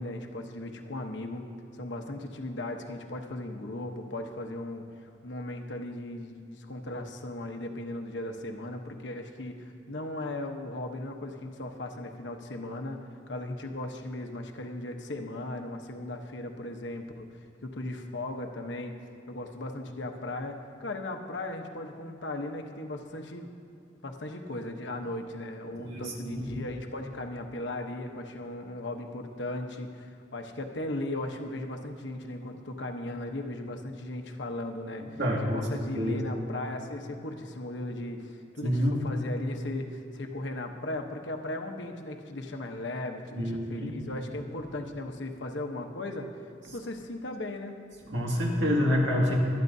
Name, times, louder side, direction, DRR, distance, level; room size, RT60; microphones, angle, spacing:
voice 1, 0.0-1.4 1.7-17.3 17.6-18.9 19.3-23.5 24.0-46.3 46.7-47.8, left 1 dB, 75° left, 3 dB, 1.0 m, -37 dB
voice 2, 25.8-26.5 35.2-35.6 36.0-36.2 38.6-38.9 43.4-43.9 48.1-49.4, equal, 75° right, -2 dB, 2.1 m, -27 dB
24.0 x 9.6 x 2.7 m, 2.6 s
head